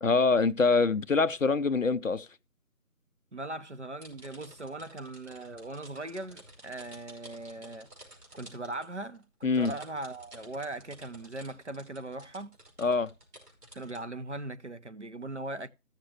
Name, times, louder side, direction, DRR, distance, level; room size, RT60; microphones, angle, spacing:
voice 1, 0.0-2.3 9.4-9.7 12.8-13.1, left 4 dB, 60° left, 0.5 m, -25 dB
voice 2, 3.3-7.9 8.3-12.5 13.7-15.7, right 2 dB, 50° right, 0.6 m, -39 dB
sound 1, 4.0-14.0, right 1 dB, 85° right, 5.4 m, -53 dB
14.5 x 6.6 x 3.2 m
figure-of-eight pair, 170°, 46 cm